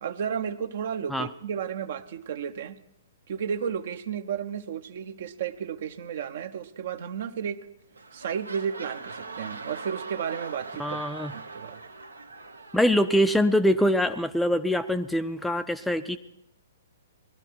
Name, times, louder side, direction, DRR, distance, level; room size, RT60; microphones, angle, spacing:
voice 1, 0.0-2.8 3.3-7.6 8.1-11.0 11.3-11.8, right 7 dB, 55° right, 10 dB, 0.8 m, -33 dB
sound 1, 7.4-7.6 7.9-13.7 14.4-14.5, right 3 dB, 80° right, 1.0 m, -42 dB
voice 2, 10.8-11.3 12.7-16.2, equal, 5° left, 9 dB, 0.5 m, -24 dB
19.5 x 12.5 x 4.6 m, 0.82 s
figure-of-eight pair, 115°, 0 cm